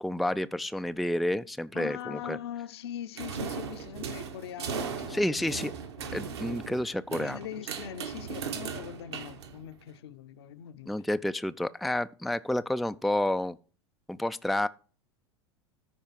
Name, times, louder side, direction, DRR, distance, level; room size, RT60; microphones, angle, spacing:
voice 1, 0.0-2.4 5.1-5.7 6.1-7.4 10.9-13.6 14.1-14.7, left 1 dB, ahead, 0.3 m, -30 dB
voice 2, 1.7-5.7 6.0-6.2 7.2-10.9, left 10 dB, 65° left, 0.7 m, -41 dB
sound 1, 3.2-9.9, right 6 dB, 70° right, 1.6 m, -37 dB
13.5 x 4.8 x 4.6 m
figure-of-eight pair, 85°, 14 cm